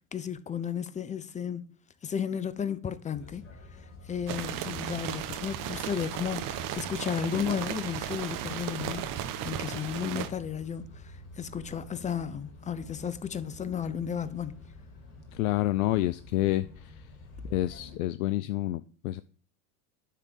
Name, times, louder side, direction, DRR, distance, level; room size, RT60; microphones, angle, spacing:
voice 1, 0.1-1.7 2.0-3.4 4.1-9.1 9.4-14.6, left 8 dB, 15° left, 0.6 m, -33 dB
sound 1, 3.1-18.0, left 2 dB, 30° left, 3.7 m, -49 dB
sound 2, 4.3-10.3, right 10 dB, 45° right, 1.1 m, -35 dB
voice 2, 15.3-17.1 17.4-19.2, left 15 dB, 65° left, 0.5 m, -29 dB
9.8 x 3.8 x 6.7 m
hypercardioid pair, 85°, 46 cm